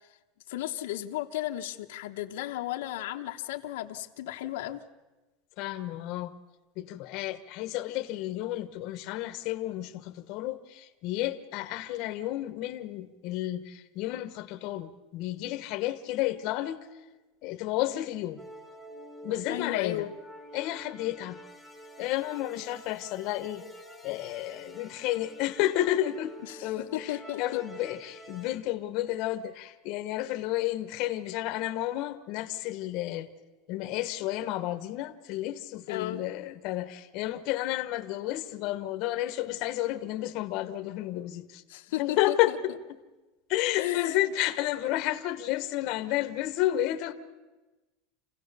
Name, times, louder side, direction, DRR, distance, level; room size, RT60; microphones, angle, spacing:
voice 1, 0.5-4.8 19.5-20.1 26.5-26.6 26.9-27.6 35.9-36.2 41.7-42.6 43.7-44.3, left 14 dB, 85° left, 1.1 m, -34 dB
voice 2, 5.6-6.3 6.8-16.9 17.4-18.4 19.2-20.1 20.5-21.4 22.0-23.6 24.0-33.3 33.7-41.6 42.0-42.7 43.5-47.1, left 14 dB, 45° left, 1.2 m, -31 dB
sound 1, 18.4-28.6, equal, 5° right, 1.8 m, -47 dB
28.0 x 16.5 x 6.8 m
supercardioid pair, 170°, 0 cm